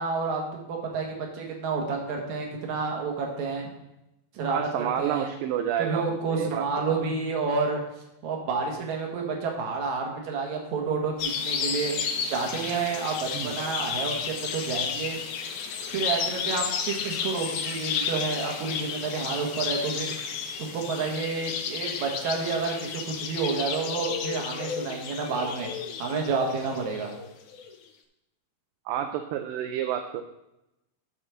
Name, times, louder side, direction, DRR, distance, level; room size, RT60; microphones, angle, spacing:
voice 1, 0.0-3.7 4.3-5.3 5.8-7.8 8.2-11.9 12.3-15.2 15.9-20.1 20.6-25.7 26.0-27.1, right 4 dB, 60° right, 1 dB, 2.5 m, -29 dB
voice 2, 4.5-6.6 13.3-13.5 28.9-30.2, right 10 dB, 80° right, 5 dB, 2.1 m, -29 dB
sound 1, 11.2-27.7, left 6 dB, 70° left, 1.9 m, -32 dB
10.5 x 4.3 x 6.2 m, 0.89 s
omnidirectional pair, 4.3 m